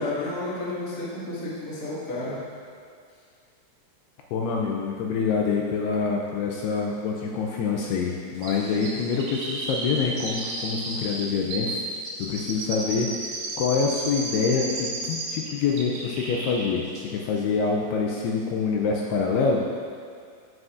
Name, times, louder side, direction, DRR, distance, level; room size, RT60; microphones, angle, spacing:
voice 1, 0.0-2.4, left 2 dB, 50° left, -9 dB, 1.0 m, -31 dB
voice 2, 4.3-11.8 12.2-19.6, left 5 dB, 80° left, -1 dB, 2.4 m, -26 dB
Chirp tweet, 8.4-15.5 15.8-16.7 17.0-17.1, right 2 dB, 70° right, 2.4 m, -33 dB
15.0 x 5.1 x 2.5 m, 2.2 s
omnidirectional pair, 5.0 m